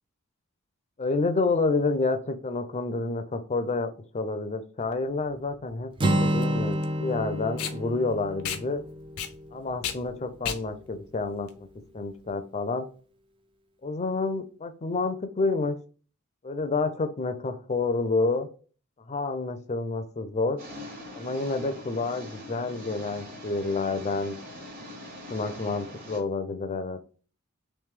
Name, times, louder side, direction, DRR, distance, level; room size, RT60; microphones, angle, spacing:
voice 1, 1.0-8.8 9.5-11.7 11.9-12.9 13.8-15.8 16.4-18.5 19.1-20.6 21.1-24.4 25.3-27.0, left 3 dB, 30° left, 9 dB, 0.5 m, -29 dB
Packing tape duct tape, 4.8-12.3, left 8 dB, 85° left, 0.6 m, -37 dB
Acoustic guitar, 6.0-9.9, right 1 dB, 25° right, 0.4 m, -29 dB
sound 1, 20.6-26.2, left 1 dB, 40° right, 1.3 m, -42 dB
3.2 x 3.1 x 3.5 m, 0.39 s
head